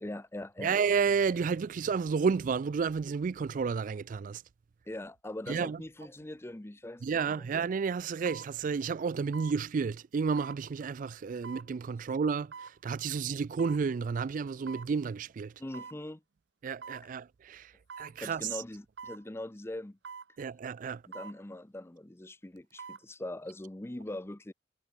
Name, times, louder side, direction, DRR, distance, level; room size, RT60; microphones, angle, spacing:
voice 1, 0.0-0.8 4.9-7.0 7.4-7.5 15.6-16.2 18.2-20.0 21.1-24.5, left 1 dB, 15° left, 0.6 m, -41 dB
voice 2, 0.6-4.4 5.5-5.8 7.0-15.5 16.6-17.7 18.0-18.5 20.4-21.0, right 5 dB, 45° right, 0.3 m, -31 dB
sound 1, 6.0-6.2 7.2-7.4 8.3-8.5 9.3-9.6 10.4-10.6 11.4-11.7 12.5-12.8 13.6-13.9 14.7-14.9 15.7-16.0 16.8-17.1 17.9-18.2 19.0-19.2 20.0-20.3 21.1-21.4 22.6-23.0 23.5-23.6, right 6 dB, 75° right, 0.7 m, -45 dB
head